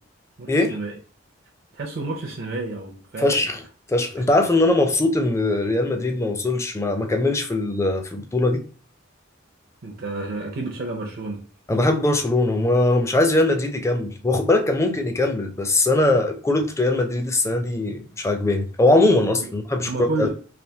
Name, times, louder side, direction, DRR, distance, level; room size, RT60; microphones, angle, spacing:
voice 1, 0.4-1.0 1.7-3.4 4.2-4.3 9.8-11.5 19.9-20.3, right 2 dB, 55° right, 0.5 m, -30 dB
voice 2, 3.2-3.6 3.9-8.6 11.7-20.3, left 2 dB, 15° left, 0.4 m, -21 dB
3.3 x 2.6 x 2.7 m
head